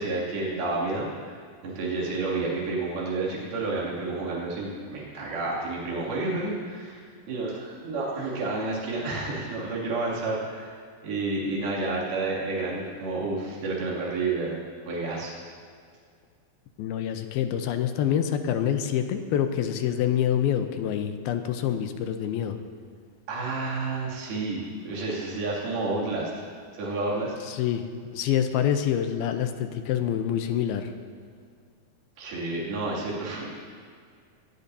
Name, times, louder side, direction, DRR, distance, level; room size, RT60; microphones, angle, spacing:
voice 1, 0.0-10.8 11.0-14.6 14.9-15.3 23.3-26.3 26.7-27.3 32.2-33.5, right 3 dB, 70° right, -6 dB, 4.6 m, -30 dB
voice 2, 16.8-22.6 27.5-30.9, left 9 dB, 80° left, 7 dB, 2.6 m, -26 dB
22.5 x 18.5 x 2.8 m, 2.1 s
omnidirectional pair, 4.5 m